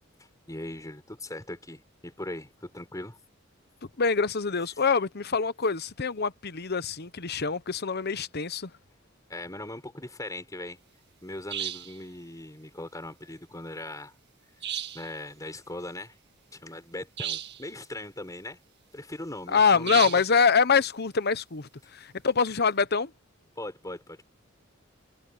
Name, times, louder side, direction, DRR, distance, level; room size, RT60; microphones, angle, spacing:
voice 1, 0.5-3.2 9.3-10.8 11.2-14.2 14.9-16.2 16.5-18.6 18.9-20.1 23.6-24.2, left 1 dB, 15° left, 4.1 m, -39 dB
voice 2, 4.0-8.7 19.5-23.1, left 5 dB, 50° left, 1.0 m, -25 dB
sound 1, 11.5-12.0 14.6-15.1 17.2-17.7 19.9-20.4, right 9 dB, 55° right, 2.0 m, -33 dB
head